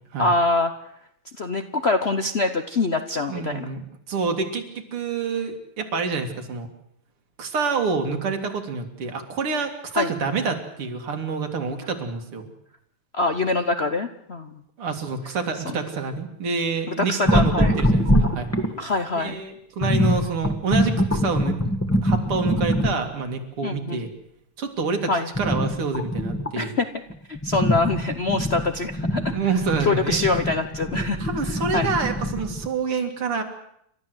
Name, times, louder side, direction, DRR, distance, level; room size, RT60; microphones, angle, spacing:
voice 1, 0.2-0.7 1.4-3.7 9.9-10.1 13.1-14.6 15.6-15.8 17.0-17.7 18.8-19.4 23.6-24.0 25.1-25.3 26.6-26.9 27.3-29.3 29.8-31.2 31.4-31.9, left 3 dB, 60° left, 8 dB, 0.6 m, -24 dB
voice 2, 3.3-6.7 7.4-12.5 14.8-18.5 19.2-21.6 22.0-24.1 24.6-25.1 25.4-26.7 29.3-30.2 31.2-33.4, right 4 dB, 80° right, 5 dB, 3.1 m, -27 dB
sound 1, 17.2-18.9 19.8-23.1 25.3-26.6 27.1-32.7, equal, 5° left, 1.5 m, -23 dB
29.5 x 13.0 x 7.8 m, 0.74 s
omnidirectional pair, 2.4 m